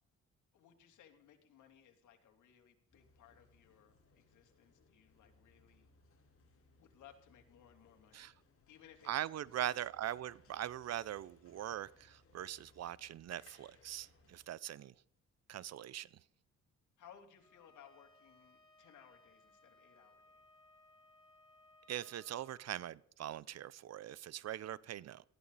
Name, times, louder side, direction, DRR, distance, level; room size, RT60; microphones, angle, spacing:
voice 1, 0.5-5.9 6.4-6.5 6.7-8.3 8.7-9.1 9.5-9.7 17.0-20.4, left 9 dB, 75° left, 3.2 m, -62 dB
sound 1, 2.9-14.5, left 3 dB, 45° left, 4.5 m, -68 dB
voice 2, 9.1-14.9 15.5-16.1 21.9-25.2, right 12 dB, 60° right, 0.6 m, -42 dB
Bowed string instrument, 17.4-22.7, left 2 dB, 15° left, 3.6 m, -65 dB
19.0 x 14.5 x 4.1 m
cardioid pair, 90°, 30 cm